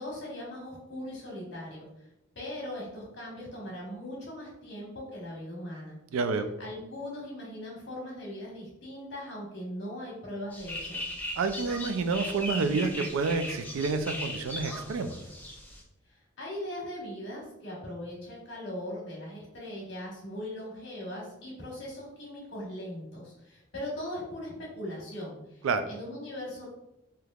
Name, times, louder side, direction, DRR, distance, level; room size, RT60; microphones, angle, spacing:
voice 1, 0.0-2.1 2.3-6.0 6.6-11.0 16.1-26.7, left 1 dB, 60° left, -4 dB, 1.4 m, -40 dB
voice 2, 6.1-6.5 11.4-15.2 25.6-25.8, right 4 dB, 85° right, 8 dB, 0.3 m, -29 dB
sound 1, 10.5-15.8, left 1 dB, 10° left, 0.4 m, -38 dB
3.5 x 2.8 x 2.3 m, 0.86 s
head